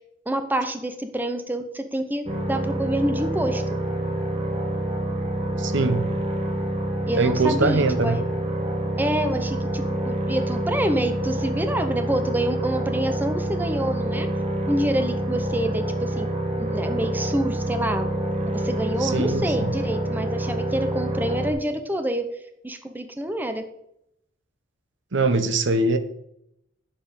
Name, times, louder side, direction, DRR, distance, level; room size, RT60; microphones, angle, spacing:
voice 1, 0.3-3.6 7.1-8.2 9.0-14.3 14.7-16.3 16.6-18.1 18.4-22.2 22.6-23.6, right 1 dB, 10° right, 7 dB, 0.7 m, -27 dB
sound 1, 2.3-21.5, right 1 dB, 30° right, 1.7 m, -27 dB
voice 2, 5.6-6.0 7.2-8.2 19.0-19.7 25.1-26.0, right 3 dB, 65° right, 10 dB, 0.9 m, -22 dB
9.2 x 7.3 x 5.2 m, 0.78 s
head